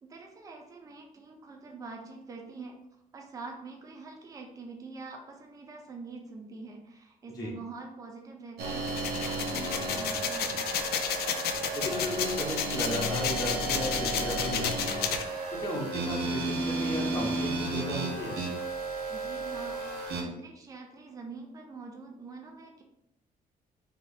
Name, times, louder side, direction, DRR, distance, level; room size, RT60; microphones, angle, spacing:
voice 1, 0.0-2.7 3.1-10.5 19.1-19.8 20.1-22.8, right 4 dB, 20° right, 1 dB, 0.5 m, -45 dB
sound 1, 8.6-20.2, right 2 dB, 80° right, 0.8 m, -33 dB
sound 2, 8.9-15.2, left 8 dB, 85° left, 0.4 m, -32 dB
voice 2, 11.7-15.1 15.6-18.4, left 1 dB, 25° left, -4 dB, 0.8 m, -35 dB
2.8 x 2.4 x 4.0 m, 0.82 s
cardioid pair, 155°, 16 cm